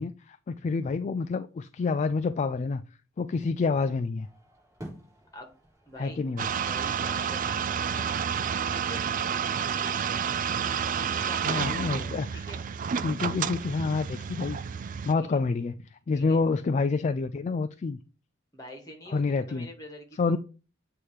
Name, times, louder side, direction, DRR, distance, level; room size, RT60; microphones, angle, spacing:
voice 1, 0.0-2.8 3.2-4.3 6.0-6.5 11.5-12.4 13.0-14.6 15.0-18.0 19.1-19.7 20.2-20.4, left 4 dB, 35° left, 0.3 m, -28 dB
sound 1, 4.2-10.1, right 1 dB, 20° right, 3.7 m, -52 dB
voice 2, 5.9-6.2 6.6-10.0 11.0-12.6 15.2-15.3 16.1-16.4 18.5-20.4, equal, 20° left, 1.6 m, -46 dB
sound 2, 6.4-15.1, right 7 dB, 40° right, 0.3 m, -30 dB
8.3 x 2.9 x 4.8 m
head